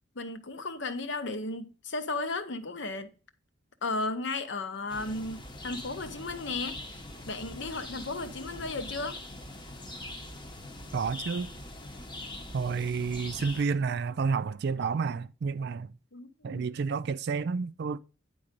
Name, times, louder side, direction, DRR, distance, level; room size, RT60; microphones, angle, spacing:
voice 1, 0.2-3.1 3.8-9.2 16.1-16.7, left 3 dB, 60° left, 0.8 m, -35 dB
sound 1, 4.9-13.7, left 1 dB, 25° left, 0.9 m, -43 dB
voice 2, 10.9-11.5 12.5-15.9 16.4-18.0, right 5 dB, 55° right, 0.4 m, -30 dB
9.8 x 3.8 x 5.2 m
head